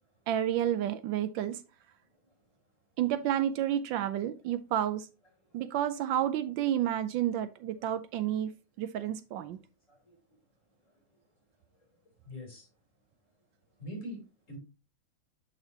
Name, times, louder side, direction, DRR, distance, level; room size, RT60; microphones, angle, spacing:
voice 1, 0.3-1.6 3.0-5.1 5.5-9.6, right 11 dB, 80° right, 1.3 m, -30 dB
voice 2, 9.9-10.2 12.2-12.7 13.8-14.2 14.5-14.6, equal, 40° left, 3.5 m, -43 dB
8.0 x 5.9 x 2.8 m
omnidirectional pair, 2.1 m